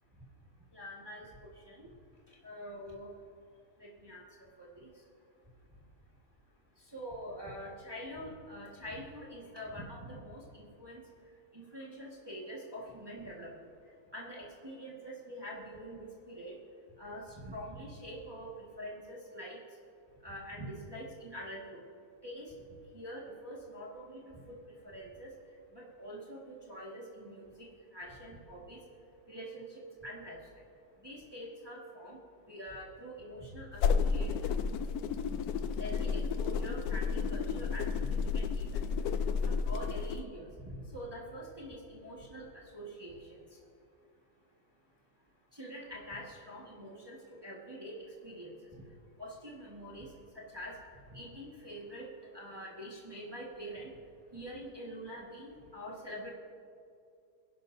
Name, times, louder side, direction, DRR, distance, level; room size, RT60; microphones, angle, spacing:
voice 1, 0.7-1.9 2.4-3.1 3.8-4.9 6.8-11.0 11.5-13.5 14.1-16.6 17.0-19.6 20.2-21.8 22.2-22.5 22.9-24.2 24.5-24.6 24.8-25.3 25.7-28.8 29.3-30.4 31.0-32.2 32.5-34.5 35.8-38.8 39.4-43.4 45.5-48.8 49.2-50.8 51.1-52.1 52.3-53.9 54.3-56.3, equal, 15° right, -4 dB, 1.6 m, -45 dB
sound 1, 33.7-40.2, left 5 dB, 75° left, 1.0 m, -32 dB
22.0 x 11.5 x 2.6 m, 2.5 s
omnidirectional pair, 1.7 m